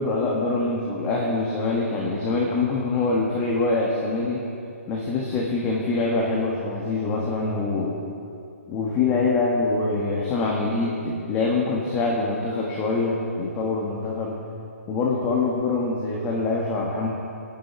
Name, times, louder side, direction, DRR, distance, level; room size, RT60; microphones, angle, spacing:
voice 1, 0.0-4.4 4.9-8.0 8.7-14.3 14.9-17.1, left 3 dB, 20° left, -2 dB, 1.4 m, -24 dB
18.5 x 9.6 x 4.4 m, 2.5 s
hypercardioid pair, 155°, 8 cm